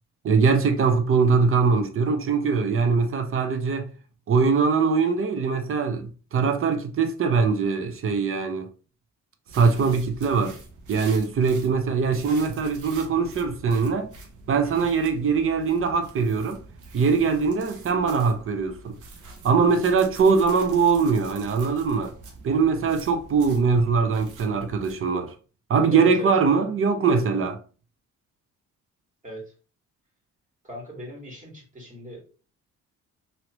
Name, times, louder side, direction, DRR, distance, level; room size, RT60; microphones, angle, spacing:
voice 1, 0.2-3.9 4.3-8.7 9.5-10.6 10.9-14.1 14.5-16.6 16.9-19.0 19.4-22.1 22.4-25.3 25.7-27.6, right 5 dB, 45° right, 0.7 m, -22 dB
sound 1, 9.5-24.9, right 3 dB, 85° right, 0.9 m, -45 dB
voice 2, 25.9-26.3 29.2-29.4 30.6-32.2, left 1 dB, 25° right, 1.8 m, -39 dB
3.0 x 2.8 x 2.9 m
cardioid pair, 90°, 30 cm